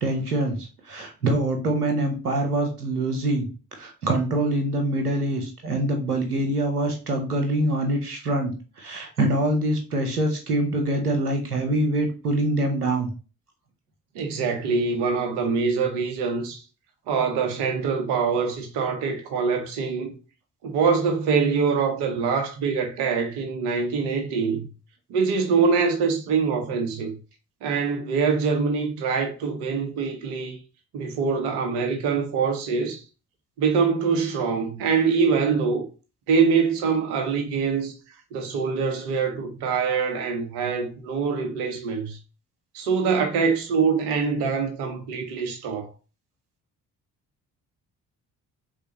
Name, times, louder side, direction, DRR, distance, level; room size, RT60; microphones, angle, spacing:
voice 1, 0.0-3.5 3.8-13.1, right 1 dB, 85° right, 0.9 m, -25 dB
voice 2, 14.1-16.6 17.1-20.1 20.6-24.7 25.1-27.1 27.6-30.6 30.9-33.0 33.6-35.8 36.3-37.9 38.3-42.2 42.7-45.9, right 5 dB, 60° right, 1.2 m, -24 dB
4.7 x 3.6 x 3.0 m
figure-of-eight pair, 45°, 45 cm